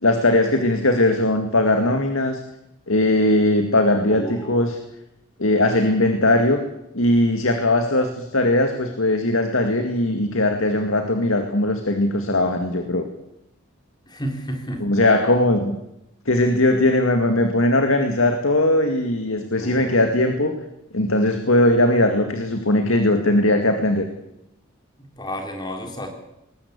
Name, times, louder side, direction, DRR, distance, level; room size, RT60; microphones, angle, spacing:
voice 1, 0.0-2.4 2.9-4.8 5.4-6.6 6.9-13.1 14.8-15.8 16.3-20.5 20.9-24.1, left 1 dB, 75° left, 6 dB, 2.1 m, -19 dB
voice 2, 4.1-4.6 14.1-14.9 19.6-20.1 25.0-26.1, equal, 20° left, 3 dB, 3.7 m, -31 dB
21.0 x 19.0 x 8.4 m, 0.86 s
head